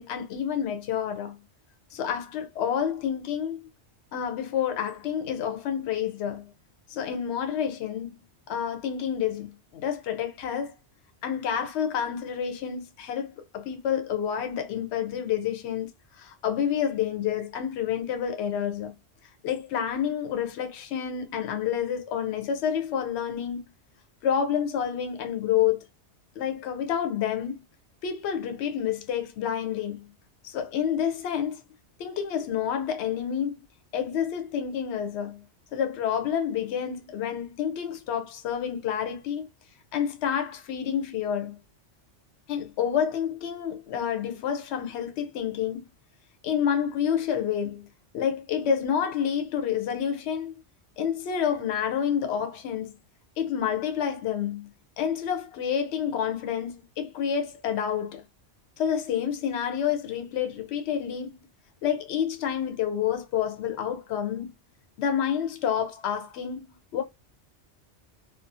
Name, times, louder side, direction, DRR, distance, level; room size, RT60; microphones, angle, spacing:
voice 1, 0.0-1.4 1.9-3.7 4.1-6.5 6.9-8.1 8.5-10.7 11.2-15.9 16.2-18.9 19.4-23.7 24.2-25.8 26.4-27.6 28.0-30.1 30.4-31.6 32.0-33.6 33.9-35.4 35.7-39.5 39.9-41.6 42.5-45.8 46.4-47.9 48.1-50.5 51.0-52.9 53.4-54.7 55.0-58.2 58.8-61.4 61.8-64.5 65.0-67.0, left 8 dB, 75° left, 0.8 m, -29 dB
2.5 x 2.2 x 2.5 m
omnidirectional pair, 1.2 m